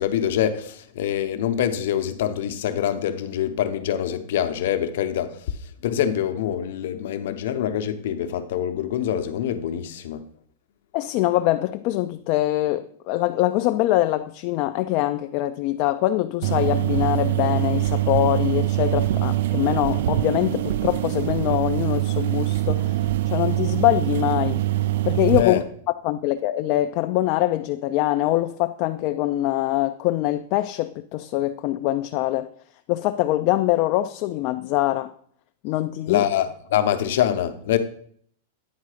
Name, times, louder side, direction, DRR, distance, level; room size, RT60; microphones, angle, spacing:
voice 1, 0.0-10.2 25.4-25.6 36.1-37.8, left 10 dB, 70° left, 0.8 m, -25 dB
voice 2, 10.9-24.6 25.0-25.6 26.0-32.5 32.9-35.1 35.6-36.2, left 15 dB, 50° left, 0.3 m, -23 dB
sound 1, 16.4-25.4, right 14 dB, 70° right, 0.3 m, -23 dB
9.4 x 3.6 x 5.0 m
hypercardioid pair, 125°, 0 cm